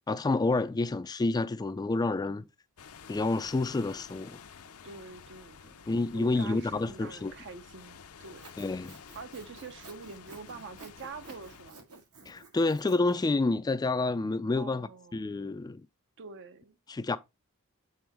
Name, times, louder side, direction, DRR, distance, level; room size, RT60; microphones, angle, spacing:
voice 1, 0.1-2.4 3.1-4.4 5.9-7.3 8.6-9.0 12.3-15.9 16.9-17.2, left 3 dB, 15° left, 0.3 m, -29 dB
sound 1, 2.8-11.7, left 6 dB, 75° left, 0.6 m, -51 dB
voice 2, 4.8-8.6 9.1-11.8 14.5-15.3 16.2-16.8, right 4 dB, 55° right, 0.6 m, -46 dB
Sawing, 8.2-13.3, right 3 dB, 80° right, 1.7 m, -53 dB
7.7 x 4.4 x 3.4 m
head